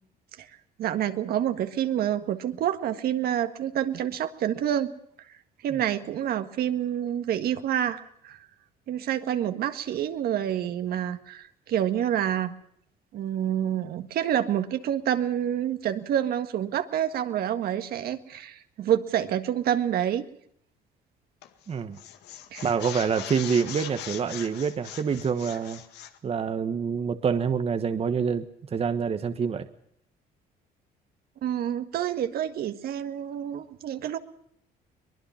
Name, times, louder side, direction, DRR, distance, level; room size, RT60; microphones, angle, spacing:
voice 1, 0.8-4.9 5.6-8.4 8.9-12.5 13.1-20.3 22.5-22.7 31.4-34.2, right 10 dB, 65° right, 8 dB, 1.8 m, -28 dB
sound 1, 21.4-21.7 22.0-26.2, left 11 dB, 80° left, 1.9 m, -40 dB
voice 2, 21.7-22.0 22.6-25.8 26.2-28.5 28.7-29.7, right 6 dB, 35° right, 9 dB, 1.3 m, -26 dB
23.0 x 20.5 x 5.8 m, 0.70 s
cardioid pair, 110°, 17 cm